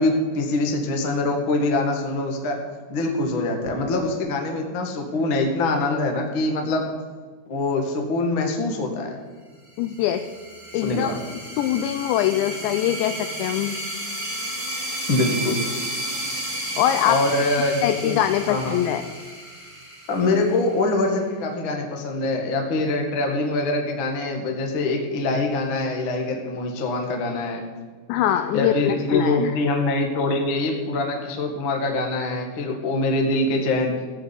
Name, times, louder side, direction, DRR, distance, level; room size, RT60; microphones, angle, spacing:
voice 1, 0.0-2.6 2.9-6.8 7.5-9.2 10.8-11.2 15.1-15.6 17.0-18.2 18.5-18.8 20.1-27.6 28.5-33.9, left 2 dB, 70° left, 2 dB, 1.2 m, -24 dB
sound 1, 9.7-21.0, right 1 dB, 25° right, 0.7 m, -33 dB
voice 2, 9.8-10.2 10.7-13.8 16.8-17.2 17.8-19.0 28.1-29.5, left 11 dB, 85° left, 9 dB, 2.6 m, -23 dB
15.0 x 7.6 x 8.4 m, 1.5 s
omnidirectional pair, 5.8 m